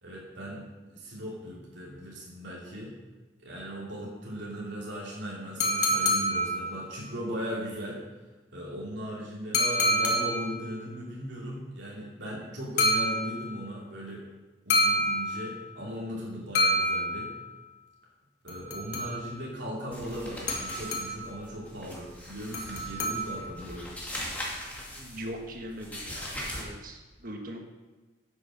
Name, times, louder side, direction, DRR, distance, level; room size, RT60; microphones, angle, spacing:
voice 1, 0.0-2.9 3.4-8.0 8.5-14.2 14.7-17.3 18.4-23.9, equal, 80° right, -5 dB, 2.8 m, -38 dB
sound 1, 5.6-7.1 9.5-10.7 12.8-13.7 14.7-15.7 16.6-17.6 18.5-19.4 20.5-21.4 22.5-23.6, equal, 65° left, 1.9 m, -28 dB
sound 2, 19.9-26.6, left 1 dB, 10° left, 2.2 m, -40 dB
voice 2, 24.9-27.6, right 1 dB, 50° right, 3 dB, 1.5 m, -41 dB
9.4 x 8.3 x 6.1 m, 1.2 s
head